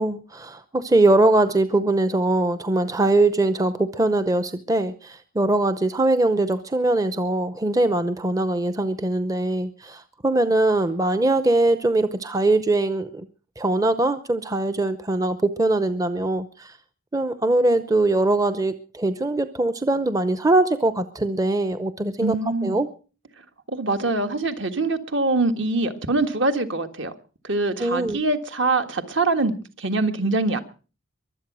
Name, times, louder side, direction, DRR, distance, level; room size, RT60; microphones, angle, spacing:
voice 1, 0.0-13.3 13.6-16.8 17.1-22.9 27.8-28.2, right 2 dB, 15° right, 0.6 m, -22 dB
voice 2, 22.2-22.8 23.7-27.1 27.4-30.6, right 2 dB, 55° right, 1.7 m, -24 dB
23.0 x 8.3 x 6.2 m
head